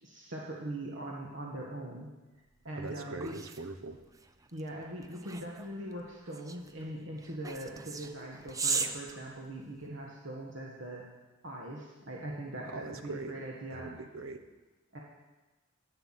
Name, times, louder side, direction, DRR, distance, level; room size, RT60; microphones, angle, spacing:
voice 1, 0.0-2.1 2.6-3.3 4.5-11.0 11.4-13.9 14.9-15.0, right 1 dB, 65° right, -2 dB, 1.6 m, -41 dB
sound 1, 2.5-10.0, right 4 dB, 15° right, 0.5 m, -39 dB
voice 2, 2.7-4.0 12.7-13.3 13.7-14.4, right 3 dB, 90° right, 8 dB, 1.1 m, -41 dB
11.5 x 8.2 x 7.5 m, 1.2 s
head